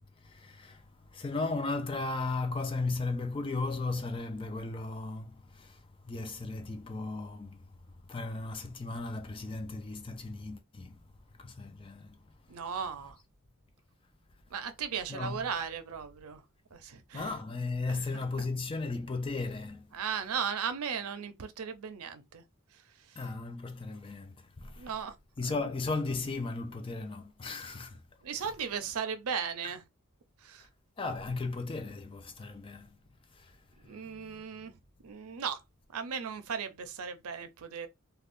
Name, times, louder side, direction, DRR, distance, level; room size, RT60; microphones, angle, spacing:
voice 1, 0.2-0.8 1.1-7.7 8.1-11.0 11.4-12.2 15.1-15.5 17.1-19.9 23.2-24.9 25.4-28.0 31.0-33.0 33.4-33.5 34.3-34.4, left 3 dB, 25° left, 0.3 m, -36 dB
voice 2, 12.5-13.2 14.5-16.4 16.7-17.3 17.9-18.5 19.9-22.4 22.7-22.8 23.1-23.2 24.8-25.2 25.4-25.6 28.2-29.8 30.4-30.7 33.8-34.8 35.0-35.6 35.9-37.9, right 7 dB, 85° right, 0.5 m, -37 dB
2.5 x 2.3 x 3.5 m
head